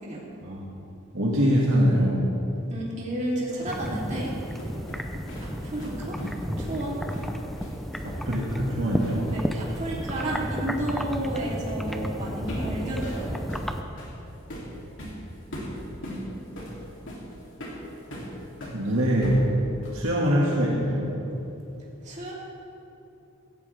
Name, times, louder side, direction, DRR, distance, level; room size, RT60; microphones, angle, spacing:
voice 1, 1.1-2.3 8.0-9.3 18.7-19.4 19.9-21.1, equal, 65° right, -5 dB, 2.0 m, -23 dB
voice 2, 2.7-4.4 5.4-6.2 6.6-7.0 9.3-13.5 22.0-22.3, right 1 dB, 35° right, -5 dB, 3.1 m, -32 dB
sound 1, 3.2-9.5 9.7-9.9 11.9-12.1 12.5-18.8 19.2-20.1, equal, 60° left, 3.0 m, -38 dB
sound 2, 3.7-13.8, equal, ahead, 0.6 m, -33 dB
16.0 x 16.0 x 3.5 m, 2.8 s
head